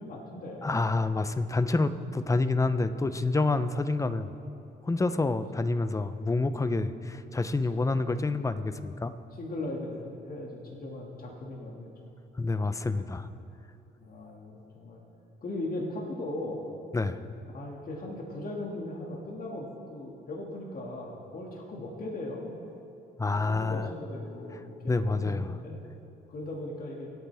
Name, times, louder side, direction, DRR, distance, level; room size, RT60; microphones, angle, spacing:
voice 1, 0.0-0.7 7.7-8.0 9.4-11.9 14.0-15.0 15.4-16.6 17.5-22.6 23.5-25.8 26.3-27.1, left 1 dB, 45° left, -2 dB, 2.1 m, -38 dB
voice 2, 0.6-4.3 4.8-9.1 12.4-13.3 16.9-17.2 23.2-23.9 24.9-25.5, left 3 dB, 15° left, 12 dB, 0.6 m, -28 dB
25.5 x 8.8 x 3.5 m, 2.7 s
cardioid pair, 90°, 20 cm